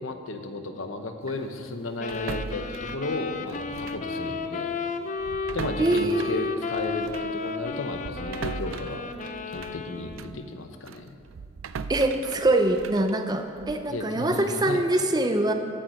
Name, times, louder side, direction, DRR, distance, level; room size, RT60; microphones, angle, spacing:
voice 1, 0.0-4.7 5.5-9.0 9.5-11.1 13.9-14.8, left 2 dB, 80° left, 6 dB, 0.9 m, -34 dB
sound 1, 2.0-10.4, left 4 dB, 40° left, 0.6 m, -33 dB
sound 2, 2.1-4.1 4.4-4.6 5.2-10.4 10.9-13.9, right 5 dB, 85° right, 0.4 m, -39 dB
voice 2, 5.8-6.5 11.9-15.5, right 1 dB, 20° right, 6 dB, 0.6 m, -24 dB
8.8 x 7.5 x 7.8 m, 2.4 s
head